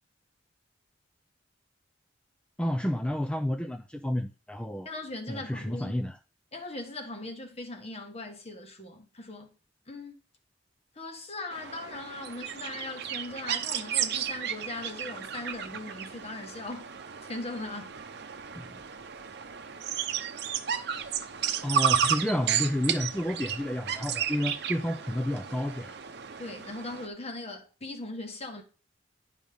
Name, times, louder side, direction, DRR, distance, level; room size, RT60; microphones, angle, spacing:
voice 1, 2.6-4.9 5.3-6.2 18.5-18.8 21.6-26.0, left 1 dB, 5° left, 0.4 m, -30 dB
voice 2, 4.8-5.9 6.5-9.5 9.9-10.2 10.9-16.9 17.2-17.9 26.4-28.6, left 2 dB, 35° left, 1.3 m, -39 dB
sound 1, 11.5-27.1, right 8 dB, 60° right, 0.8 m, -33 dB
10.5 x 5.1 x 3.5 m
head